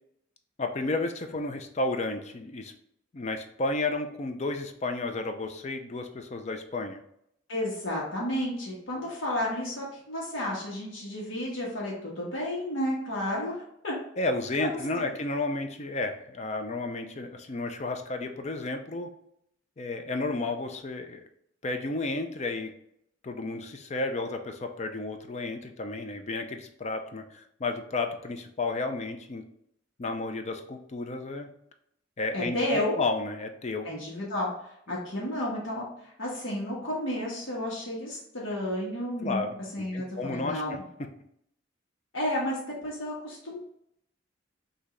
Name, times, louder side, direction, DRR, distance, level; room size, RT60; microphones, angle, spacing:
voice 1, 0.6-2.7 3.1-7.0 14.2-19.1 19.8-21.2 21.6-22.7 23.2-29.4 30.0-31.5 32.2-33.9 39.2-39.6 39.9-40.6, left 2 dB, 35° left, 6 dB, 0.5 m, -32 dB
voice 2, 7.5-14.0 14.6-15.1 32.3-33.0 33.8-34.5 34.9-35.8 36.2-39.4 39.7-40.8 42.1-43.6, left 1 dB, 85° left, -4 dB, 1.4 m, -32 dB
5.9 x 2.8 x 3.2 m, 0.73 s
head